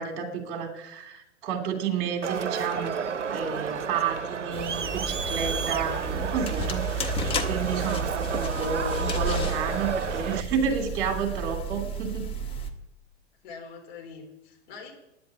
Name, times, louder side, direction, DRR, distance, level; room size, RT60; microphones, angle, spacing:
voice 1, 0.0-3.0 3.3-12.2, right 6 dB, 45° right, 3 dB, 3.0 m, -31 dB
Crowd, 2.2-10.4, right 6 dB, 80° right, 0.7 m, -31 dB
voice 2, 3.4-3.8 13.4-14.9, left 5 dB, 40° left, 1 dB, 4.1 m, -46 dB
sound 1, 4.5-12.7, right 1 dB, 15° left, 1.3 m, -32 dB
10.5 x 9.9 x 8.6 m, 0.89 s
figure-of-eight pair, 105°, 36 cm